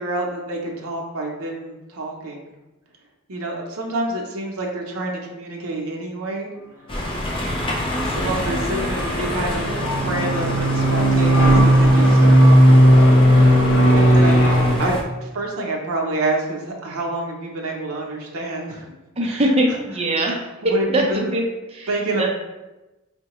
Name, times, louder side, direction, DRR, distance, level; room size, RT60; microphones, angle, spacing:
voice 1, 0.0-2.4 3.3-6.5 8.1-9.7 10.0-12.9 13.9-14.4 14.8-18.8 19.3-19.4 20.7-21.3 21.9-22.3, right 2 dB, 80° right, -1 dB, 0.6 m, -27 dB
sound 1, 6.9-15.0, left 1 dB, 25° left, 0.4 m, -28 dB
sound 2, 7.8-14.7, equal, 60° left, 0.7 m, -15 dB
voice 2, 19.2-20.4 20.8-22.3, right 1 dB, 30° right, -1 dB, 0.6 m, -22 dB
4.5 x 2.1 x 2.9 m, 1.0 s
head